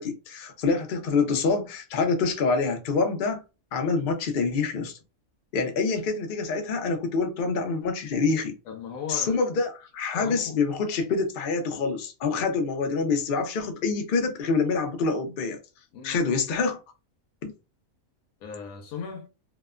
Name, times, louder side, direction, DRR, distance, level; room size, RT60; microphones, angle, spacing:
voice 1, 0.0-3.4 3.7-5.0 5.5-8.5 9.1-15.6 16.0-16.8 17.4-17.5, left 4 dB, 55° left, 0.6 m, -26 dB
voice 2, 8.7-9.4 10.1-10.6 15.9-16.2 18.4-19.3, left 6 dB, 80° left, 1.1 m, -37 dB
2.8 x 2.1 x 2.3 m
omnidirectional pair, 1.5 m